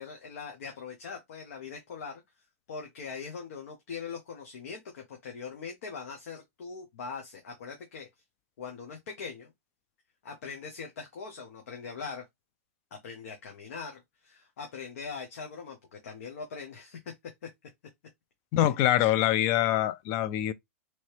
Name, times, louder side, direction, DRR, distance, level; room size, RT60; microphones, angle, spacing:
voice 1, 0.0-2.2 2.7-8.1 8.6-9.5 10.2-12.2 13.0-17.0 18.6-18.7, left 5 dB, 70° left, 1.0 m, -41 dB
voice 2, 18.5-20.5, left 13 dB, 40° left, 0.4 m, -24 dB
3.1 x 2.8 x 3.1 m
hypercardioid pair, 130°, 8 cm